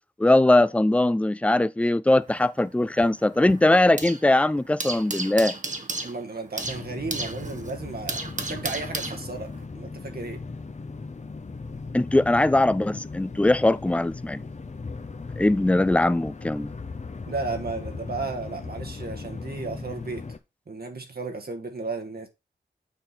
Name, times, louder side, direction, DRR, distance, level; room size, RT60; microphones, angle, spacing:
voice 1, 0.2-5.5 11.9-14.4 15.4-16.7, left 1 dB, 5° left, 0.4 m, -21 dB
sound 1, 2.2-4.3 4.6-9.6, right 2 dB, 40° right, 1.0 m, -34 dB
voice 2, 6.0-10.4 17.3-20.2 20.7-22.3, right 3 dB, 55° right, 1.3 m, -34 dB
sound 2, 6.6-20.4, left 4 dB, 40° left, 0.8 m, -38 dB
6.9 x 3.9 x 4.0 m
cardioid pair, 40°, 19 cm